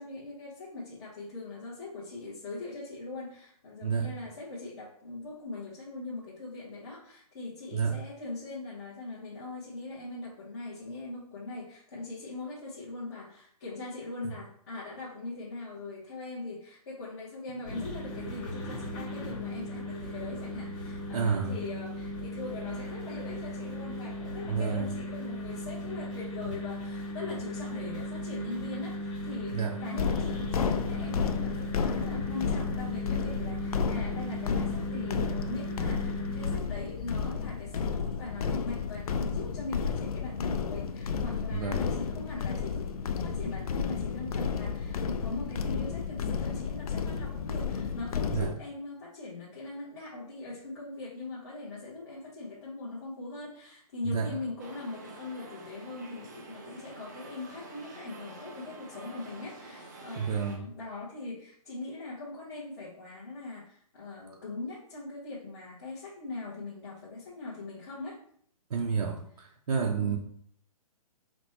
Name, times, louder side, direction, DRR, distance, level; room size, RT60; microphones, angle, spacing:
voice 1, 0.0-68.2 70.0-70.2, left 3 dB, 30° left, -8 dB, 0.8 m, -41 dB
sound 1, 17.6-36.6, equal, 5° left, 1.0 m, -37 dB
voice 2, 21.1-21.5 24.5-24.9 29.5-29.8 41.5-41.9 48.3-48.5 54.0-54.3 60.2-60.6 68.7-70.2, right 6 dB, 80° right, 1 dB, 0.6 m, -30 dB
sound 2, 30.0-48.5, left 6 dB, 75° left, 0.4 m, -32 dB
sound 3, 54.6-60.6, right 2 dB, 30° right, 0.5 m, -47 dB
4.3 x 2.2 x 4.2 m, 0.63 s
hypercardioid pair, 170°, 19 cm